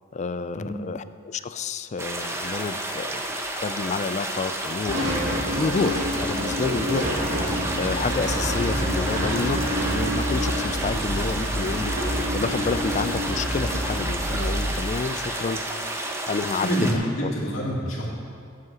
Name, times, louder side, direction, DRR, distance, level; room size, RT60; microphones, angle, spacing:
voice 1, 0.1-3.2 3.6-5.1 5.6-7.1 7.7-17.3, left 4 dB, 35° left, 12 dB, 0.4 m, -29 dB
sound 1, 2.0-16.9, right 1 dB, 15° right, 0.9 m, -31 dB
sound 2, 4.9-14.7, equal, 75° right, 2.0 m, -27 dB
voice 2, 16.6-18.1, equal, 85° left, -4 dB, 2.6 m, -26 dB
8.3 x 7.7 x 7.8 m, 2.3 s
head